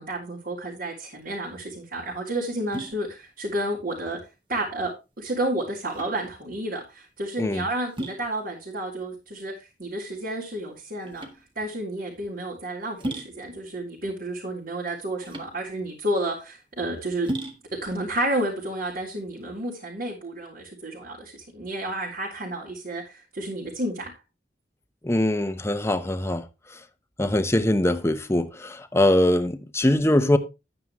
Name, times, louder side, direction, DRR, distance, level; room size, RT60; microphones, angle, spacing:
voice 1, 0.0-4.2 4.5-11.3 11.5-17.3 17.7-24.1, right 1 dB, 55° right, 3.3 m, -31 dB
sound 1, 1.1-19.7, right 1 dB, 30° right, 1.8 m, -39 dB
voice 2, 25.0-26.5 27.2-30.4, left 1 dB, 15° left, 0.9 m, -22 dB
11.0 x 9.4 x 3.1 m
head